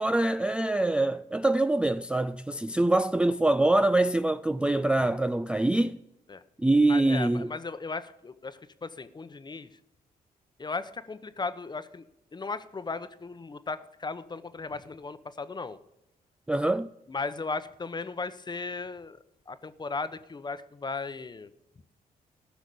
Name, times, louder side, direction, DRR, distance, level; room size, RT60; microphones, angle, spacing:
voice 1, 0.0-6.0 6.6-7.5 16.5-16.9, right 2 dB, 5° right, 0.3 m, -24 dB
voice 2, 6.9-9.7 10.6-12.1 12.3-15.8 17.1-19.2 19.5-21.5, left 4 dB, 25° left, 0.9 m, -36 dB
14.5 x 6.0 x 6.8 m
cardioid pair, 90°, 16 cm